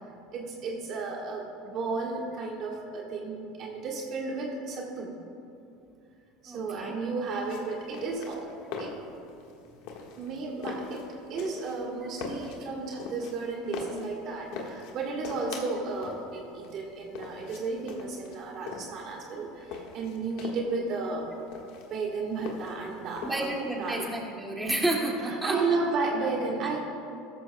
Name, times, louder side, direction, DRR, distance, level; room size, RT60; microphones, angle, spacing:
voice 1, 0.3-5.1 6.4-8.5 8.8-9.0 10.2-23.5 23.8-24.1 25.2-26.8, right 3 dB, 50° right, -1 dB, 1.5 m, -33 dB
voice 2, 6.5-6.9 23.2-25.8, right 1 dB, 10° right, -2 dB, 2.3 m, -30 dB
sound 1, 7.4-24.0, left 4 dB, 65° left, 1.6 m, -42 dB
15.0 x 13.0 x 2.3 m, 2.6 s
hypercardioid pair, 85°, 0 cm